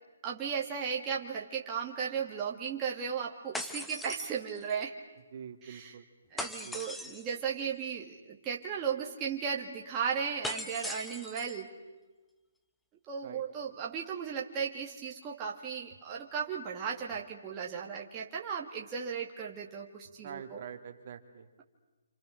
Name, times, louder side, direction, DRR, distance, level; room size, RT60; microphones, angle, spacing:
voice 1, 0.2-5.0 5.6-6.0 6.3-11.7 13.1-20.6, right 7 dB, 15° right, -3 dB, 2.2 m, -36 dB
sound 1, 3.5-4.8 6.4-7.4 10.4-11.6, left 1 dB, 5° left, 1.0 m, -40 dB
voice 2, 5.3-6.0 6.6-6.8 13.2-13.4 20.2-21.5, right 8 dB, 40° right, 5 dB, 2.5 m, -45 dB
29.0 x 27.5 x 6.6 m, 1.2 s
hypercardioid pair, 160°, 0 cm